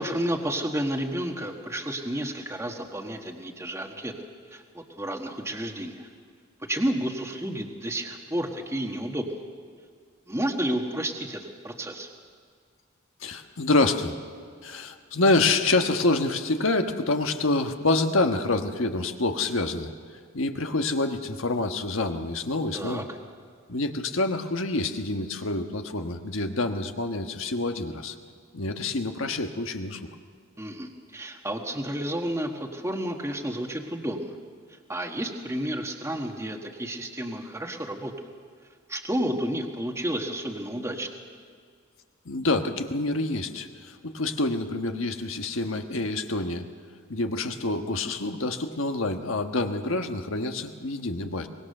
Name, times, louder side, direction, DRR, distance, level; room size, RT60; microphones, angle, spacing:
voice 1, 0.0-4.1 4.5-6.1 6.7-9.4 10.3-12.1 22.7-23.0 30.6-34.3 34.9-38.3 38.9-41.1, right 1 dB, 15° right, 2 dB, 1.5 m, -31 dB
voice 2, 13.2-14.1 14.6-19.9 20.3-23.0 23.7-28.1 28.5-30.1 42.2-46.6 47.1-51.5, left 2 dB, 65° left, 6 dB, 1.4 m, -27 dB
24.0 x 20.5 x 6.7 m, 2.1 s
head